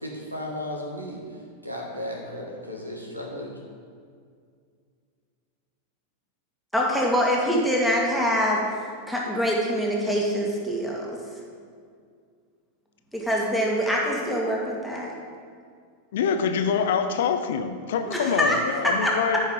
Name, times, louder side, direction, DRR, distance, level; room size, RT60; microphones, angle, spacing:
voice 1, 0.0-3.6, left 1 dB, 85° right, 0 dB, 1.5 m, -35 dB
voice 2, 6.7-8.6 9.1-11.1 13.1-15.1 18.1-18.6 18.8-19.1, equal, ahead, -3 dB, 1.9 m, -24 dB
voice 3, 16.1-19.4, left 6 dB, 55° left, 7 dB, 0.7 m, -25 dB
14.0 x 5.4 x 3.8 m, 2.2 s
figure-of-eight pair, 90°, 0 cm